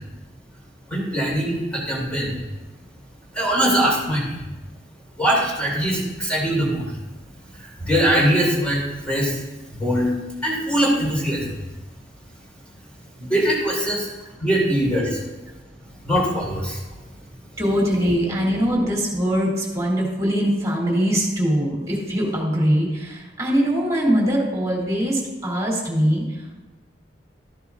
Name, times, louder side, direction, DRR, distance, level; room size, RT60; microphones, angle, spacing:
voice 1, 0.9-2.4 3.3-4.2 5.2-6.8 7.8-9.4 9.7-10.1 10.4-11.4 13.2-14.1 14.4-15.2 16.0-16.8, equal, 5° left, -5 dB, 3.9 m, -21 dB
voice 2, 17.6-26.2, equal, 20° right, -3 dB, 2.9 m, -22 dB
13.5 x 11.0 x 2.5 m, 1.1 s
head